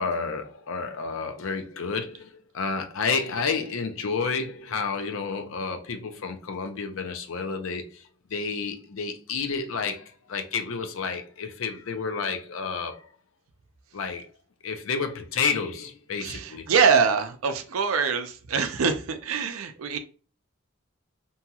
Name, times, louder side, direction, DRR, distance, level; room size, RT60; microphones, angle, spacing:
voice 1, 0.0-13.1 13.9-14.3 14.6-16.7, left 5 dB, 70° left, 0.5 m, -30 dB
voice 2, 16.2-20.0, right 6 dB, 85° right, 0.5 m, -24 dB
2.7 x 2.3 x 2.8 m
head